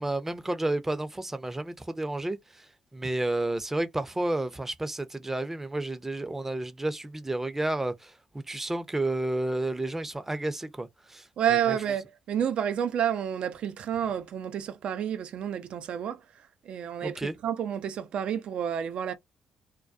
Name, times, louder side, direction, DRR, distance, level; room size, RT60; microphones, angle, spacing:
voice 1, 0.0-2.7 2.9-11.2 11.7-11.8 17.0-17.3, right 2 dB, 15° right, 0.6 m, -31 dB
voice 2, 11.4-16.2 16.7-19.1, right 9 dB, 65° right, 0.5 m, -29 dB
2.3 x 2.2 x 2.5 m
hypercardioid pair, 50°, 2 cm